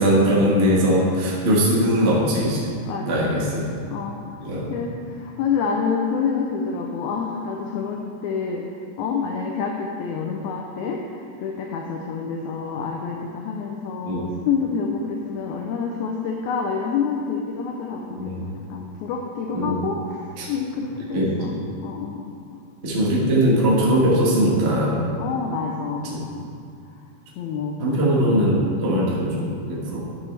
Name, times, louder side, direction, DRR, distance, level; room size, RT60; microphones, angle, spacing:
voice 1, 0.0-2.7 3.0-3.7 4.4-4.7 14.0-14.3 18.2-18.5 19.5-19.9 20.4-20.5 21.1-21.6 22.8-25.0 26.1-26.2 27.8-30.0, equal, 60° right, -6 dB, 0.6 m, -20 dB
voice 2, 2.9-3.2 3.9-21.6 21.8-22.4 25.2-26.5 27.4-28.0, left 5 dB, 80° left, 0 dB, 1.8 m, -28 dB
11.5 x 6.5 x 3.3 m, 2.4 s
omnidirectional pair, 3.9 m